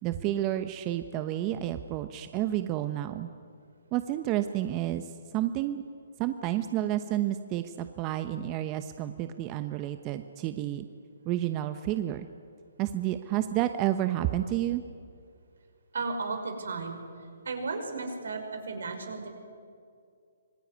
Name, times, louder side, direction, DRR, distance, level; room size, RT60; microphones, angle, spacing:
voice 1, 0.0-3.3 3.9-5.8 6.2-10.9 11.2-12.3 12.8-14.8, right 13 dB, 25° right, 9 dB, 1.0 m, -30 dB
voice 2, 15.9-17.0 17.4-19.3, right 4 dB, 75° right, 5 dB, 5.7 m, -34 dB
26.0 x 19.5 x 9.4 m, 2.3 s
hypercardioid pair, 145°, 0 cm